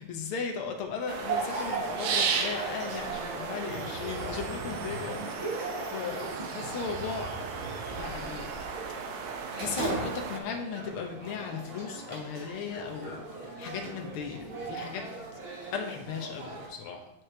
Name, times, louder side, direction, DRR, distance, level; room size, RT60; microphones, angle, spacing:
voice 1, 0.0-7.4 7.9-8.5 8.9-15.1 15.7-17.1, left 6 dB, 70° left, 3 dB, 1.3 m, -37 dB
sound 1, 1.1-10.4, right 6 dB, 75° right, 2.0 m, -35 dB
sound 2, 1.2-16.7, right 3 dB, 45° right, 2.4 m, -39 dB
sound 3, 3.7-8.6, right 1 dB, 25° right, 1.1 m, -43 dB
9.3 x 6.3 x 3.3 m, 0.86 s
omnidirectional pair, 3.5 m